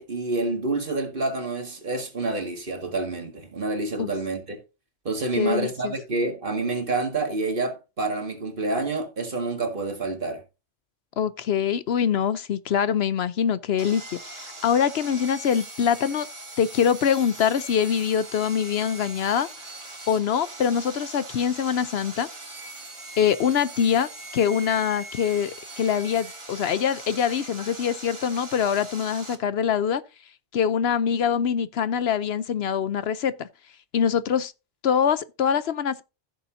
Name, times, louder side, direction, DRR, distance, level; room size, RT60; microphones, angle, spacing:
voice 1, 0.0-4.6 5.1-10.4, right 2 dB, 50° right, 2.1 m, -28 dB
voice 2, 5.4-5.9 11.2-16.3 16.6-19.5 20.1-22.3 23.2-30.0 30.5-33.5 33.9-34.5 34.8-36.0, left 8 dB, 70° left, 0.9 m, -24 dB
Sawing, 13.8-29.3, right 2 dB, 25° right, 1.6 m, -41 dB
15.5 x 6.9 x 2.6 m
omnidirectional pair, 1.1 m